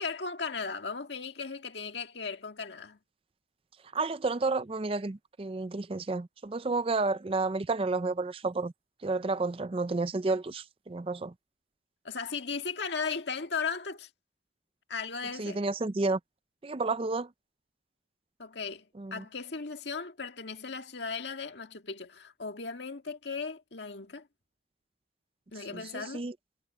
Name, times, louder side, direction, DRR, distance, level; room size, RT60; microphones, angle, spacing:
voice 1, 0.0-3.0 12.0-14.1 14.9-15.6 18.4-24.3 25.5-26.2, left 5 dB, 70° left, 1.8 m, -37 dB
voice 2, 3.9-8.7 9.0-11.3 15.4-16.2 16.6-17.3 19.0-19.2 25.7-26.3, right 3 dB, 30° right, 0.5 m, -31 dB
head